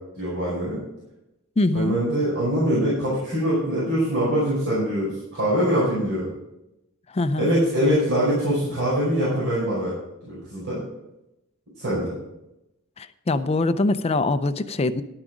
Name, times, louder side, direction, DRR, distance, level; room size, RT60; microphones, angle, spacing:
voice 1, 0.1-0.8 1.7-6.3 7.4-9.9 10.2-10.8 11.8-12.1, equal, 60° right, -8 dB, 5.0 m, -23 dB
voice 2, 1.6-2.0 7.1-7.5 13.0-15.0, left 2 dB, 30° left, 12 dB, 0.4 m, -23 dB
11.5 x 8.8 x 5.0 m, 0.90 s
head